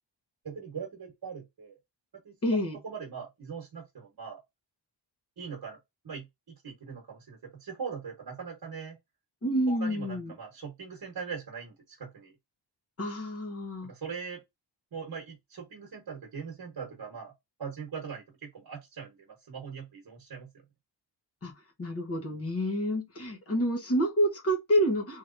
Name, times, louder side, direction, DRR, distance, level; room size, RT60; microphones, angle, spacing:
voice 1, 0.4-1.8 2.2-2.6 2.8-4.4 5.4-5.8 6.0-9.0 9.7-12.3 13.8-14.4 14.9-17.3 17.6-20.5, right 6 dB, 60° right, 1.2 m, -41 dB
voice 2, 2.4-2.8 9.4-10.3 13.0-13.9 21.4-21.5 21.8-25.2, equal, 30° left, 1.2 m, -28 dB
3.2 x 3.0 x 2.6 m
wide cardioid pair, 115°, 44 cm